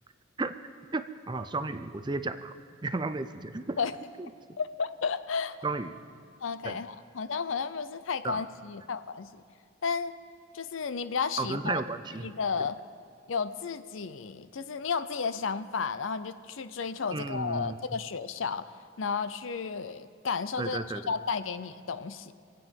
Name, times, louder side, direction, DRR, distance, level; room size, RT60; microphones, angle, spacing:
voice 1, 0.9-2.5 2.8-3.8 4.2-4.6 5.6-6.0 6.6-6.8 8.2-8.4 11.4-12.3 17.1-17.8 20.6-21.1, right 3 dB, 20° right, 11 dB, 0.5 m, -33 dB
voice 2, 4.6-5.6 6.4-9.4 9.8-10.1 10.5-11.8 12.2-12.8 13.3-18.6 19.0-22.3, left 5 dB, 80° left, 12 dB, 0.6 m, -33 dB
25.5 x 8.7 x 5.4 m, 2.2 s
head